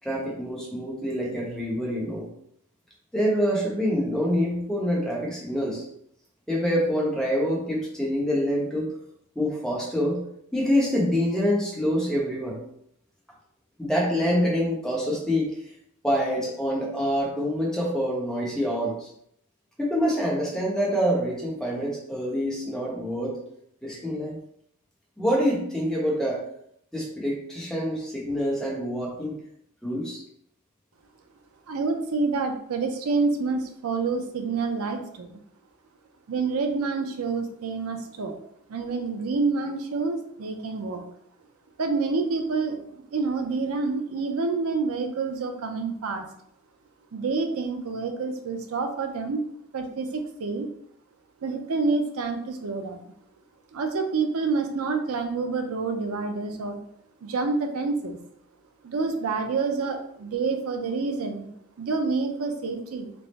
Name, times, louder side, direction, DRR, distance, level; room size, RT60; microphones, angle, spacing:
voice 1, 0.0-2.3 3.1-5.8 6.5-8.9 9.4-10.2 10.5-12.6 13.8-15.5 16.0-19.1 19.8-23.4 23.8-24.4 25.2-26.4 26.9-29.4 29.8-30.2, equal, 5° left, -3 dB, 0.8 m, -26 dB
voice 2, 31.7-35.4 36.3-38.4 38.7-41.0 41.8-46.3 47.1-49.4 49.7-50.7 51.4-53.1 53.7-56.8 57.2-58.2 58.8-63.1, right 4 dB, 90° right, 5 dB, 0.5 m, -28 dB
3.4 x 2.0 x 3.9 m, 0.71 s
head